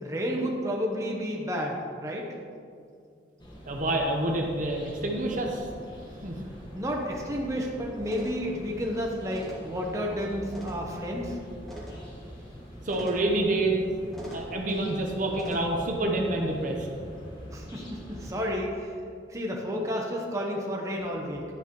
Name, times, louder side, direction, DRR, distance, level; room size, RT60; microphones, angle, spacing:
voice 1, 0.0-2.2 6.7-11.4 17.5-19.0 19.3-21.4, equal, 15° right, -1 dB, 0.9 m, -31 dB
sound 1, 3.4-18.5, equal, 25° left, 1.3 m, -44 dB
voice 2, 3.6-5.7 6.2-6.3 12.8-13.8 14.3-16.9, right 2 dB, 45° right, 1 dB, 0.9 m, -27 dB
sound 2, 8.0-15.6, equal, ahead, 1.6 m, -45 dB
10.5 x 8.7 x 3.1 m, 2.3 s
head